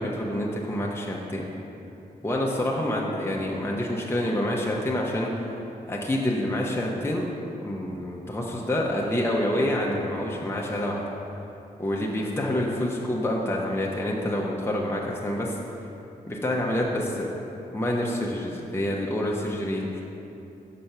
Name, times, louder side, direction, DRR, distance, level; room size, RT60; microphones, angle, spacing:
voice 1, 0.0-1.5 2.2-5.3 5.8-11.1 11.8-15.6 16.3-17.3 17.7-20.0, left 1 dB, 15° left, -3 dB, 0.8 m, -27 dB
5.9 x 5.1 x 5.6 m, 2.9 s
cardioid pair, 60°, 16 cm